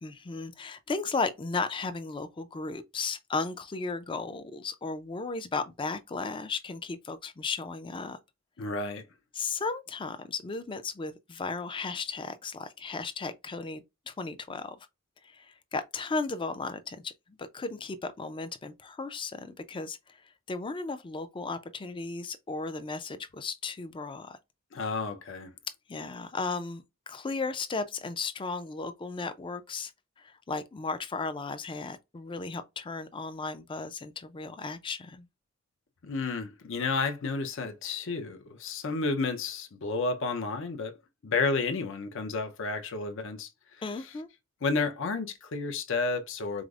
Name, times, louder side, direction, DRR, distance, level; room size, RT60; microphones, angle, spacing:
voice 1, 0.0-8.2 9.3-14.8 15.2-20.2 20.5-24.4 25.9-29.9 30.2-35.3 43.8-44.3, left 4 dB, 25° left, 0.4 m, -35 dB
voice 2, 8.6-9.0 24.7-25.5 36.0-41.0 41.2-43.8 44.6-46.6, left 4 dB, 65° left, 0.6 m, -31 dB
4.9 x 2.0 x 2.4 m
head